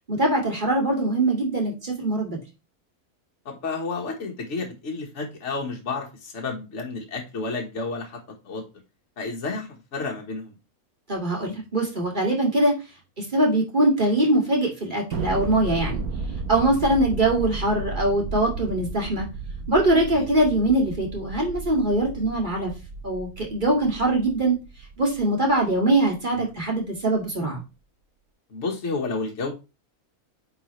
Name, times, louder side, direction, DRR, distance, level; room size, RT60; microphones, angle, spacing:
voice 1, 0.1-2.4 11.1-12.7 13.2-16.0 16.5-19.3 19.7-22.7 23.0-24.5 25.0-27.6, right 1 dB, 35° right, 2.2 m, -22 dB
voice 2, 3.4-8.6 9.2-10.5 20.1-20.3 26.3-26.5 28.5-29.5, left 3 dB, 55° left, 1.6 m, -31 dB
Thunder, 15.1-25.8, right 3 dB, 85° right, 1.4 m, -34 dB
9.3 x 4.0 x 3.1 m
omnidirectional pair, 1.5 m